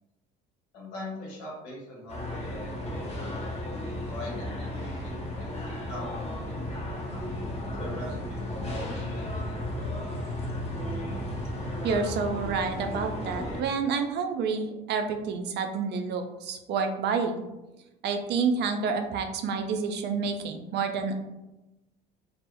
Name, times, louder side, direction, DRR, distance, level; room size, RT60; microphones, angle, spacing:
voice 1, 0.7-3.5 4.1-4.7 5.0-5.4 5.9-6.6 6.9-7.2 7.7-9.9, left 1 dB, 90° left, -3 dB, 0.9 m, -42 dB
sound 1, 2.1-13.6, left 1 dB, 30° left, 0.7 m, -34 dB
voice 2, 11.8-17.4 18.0-21.1, right 5 dB, 55° right, 6 dB, 0.4 m, -29 dB
2.1 x 2.0 x 3.5 m, 0.98 s
supercardioid pair, 75°, 21 cm